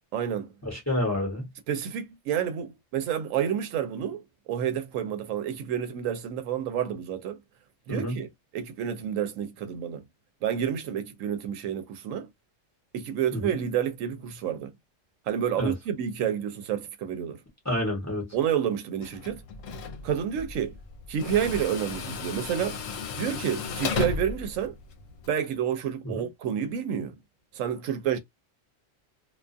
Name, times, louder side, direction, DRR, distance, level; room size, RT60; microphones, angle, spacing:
voice 1, 0.1-0.5 1.7-7.4 7.9-8.3 8.5-10.1 10.4-12.3 12.9-14.7 15.3-17.4 18.3-19.4 20.0-20.8 21.1-22.8 23.2-24.8 25.3-27.1 27.5-28.2, right 9 dB, 80° right, 0.9 m, -29 dB
voice 2, 0.6-1.5 7.9-8.1 13.3-13.4 15.6-15.7 17.6-18.3 26.1-26.3, left 1 dB, 15° left, 0.9 m, -28 dB
Tools, 19.0-25.3, left 5 dB, 80° left, 1.0 m, -35 dB
2.4 x 2.3 x 2.5 m
omnidirectional pair, 1.3 m